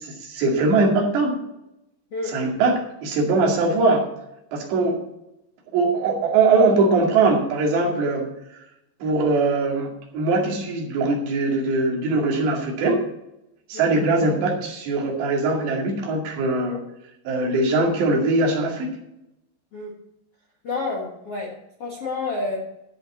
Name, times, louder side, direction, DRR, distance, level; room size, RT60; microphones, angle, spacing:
voice 1, 0.0-1.4 2.3-4.0 4.5-5.0 5.7-8.3 9.0-13.0 13.7-16.8 17.3-18.9, right 3 dB, 70° right, 0 dB, 4.4 m, -21 dB
voice 2, 2.1-2.4 13.7-14.1 19.7-19.9 20.6-22.6, left 3 dB, 55° left, -2 dB, 1.8 m, -29 dB
13.5 x 5.6 x 7.3 m, 0.84 s
omnidirectional pair, 5.2 m